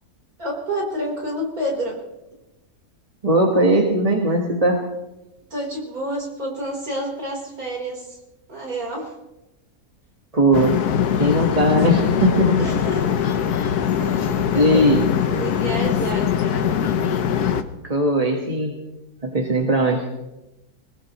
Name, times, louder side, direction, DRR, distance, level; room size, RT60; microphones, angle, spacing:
voice 1, 0.4-2.0 5.5-8.2 8.5-9.2 12.6-13.3 14.0-14.8 15.3-16.7, right 1 dB, 65° right, -1 dB, 4.7 m, -29 dB
voice 2, 3.2-4.8 10.3-10.8 11.2-12.6 14.5-15.1 17.8-18.7 19.2-20.0, right 1 dB, 25° right, 0 dB, 1.5 m, -19 dB
sound 1, 10.5-17.6, left 8 dB, 85° left, 1.4 m, -22 dB
21.5 x 19.5 x 3.1 m, 0.96 s
omnidirectional pair, 1.6 m